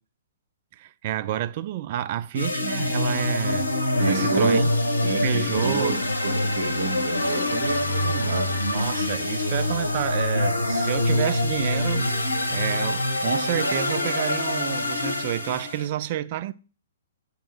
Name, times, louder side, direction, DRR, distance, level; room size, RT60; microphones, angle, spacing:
voice 1, 0.8-3.7 4.1-4.7 5.2-6.0 8.6-12.1 12.5-16.5, right 12 dB, 45° right, 0.4 m, -29 dB
sound 1, 2.3-15.9, left 1 dB, 80° left, 0.8 m, -25 dB
voice 2, 4.0-4.7 5.0-8.6, right 3 dB, 65° right, 1.2 m, -28 dB
7.4 x 2.9 x 5.8 m
figure-of-eight pair, 115°, 0 cm